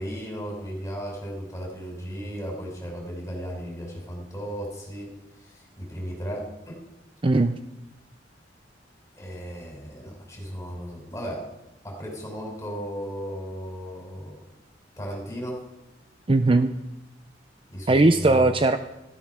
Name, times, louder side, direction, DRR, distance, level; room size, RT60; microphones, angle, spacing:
voice 1, 0.0-5.2 5.4-6.8 9.2-11.5 11.8-14.4 15.0-15.6 17.7-18.5, equal, 15° left, -1 dB, 5.5 m, -35 dB
voice 2, 7.2-7.5 16.3-16.7 17.9-18.8, right 2 dB, 30° right, 9 dB, 0.6 m, -19 dB
15.0 x 14.0 x 6.0 m, 0.99 s
head